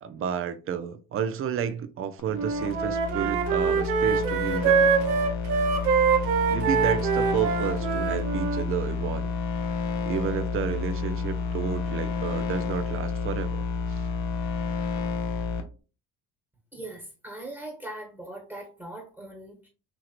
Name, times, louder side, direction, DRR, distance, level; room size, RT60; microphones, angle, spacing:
voice 1, 0.0-4.9 6.5-9.3 10.1-14.0, right 8 dB, 30° right, 0.4 m, -31 dB
sound 1, 2.2-15.6, left 4 dB, 50° left, 0.7 m, -30 dB
Wind instrument woodwind instrument, 2.3-8.6, right 6 dB, 85° right, 0.6 m, -24 dB
voice 2, 16.7-19.7, right 1 dB, 5° right, 1.1 m, -40 dB
2.9 x 2.8 x 2.4 m
hypercardioid pair, 55°, 45 cm